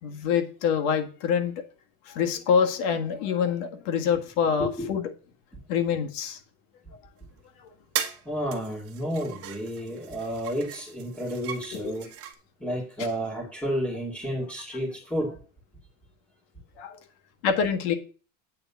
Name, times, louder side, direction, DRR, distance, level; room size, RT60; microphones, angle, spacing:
voice 1, 0.0-1.5 2.1-5.1 5.7-6.4 11.7-11.8 16.8-17.0 17.4-17.9, left 7 dB, 60° left, 5 dB, 1.8 m, -25 dB
voice 2, 4.6-4.9 5.5-5.6 8.3-12.1 12.6-15.3, equal, 5° left, -5 dB, 2.3 m, -31 dB
sound 1, 7.3-7.4 7.9-8.2 8.5-12.3, right 10 dB, 35° right, 1.2 m, -37 dB
8.7 x 4.0 x 7.0 m, 0.38 s
supercardioid pair, 150°, 40 cm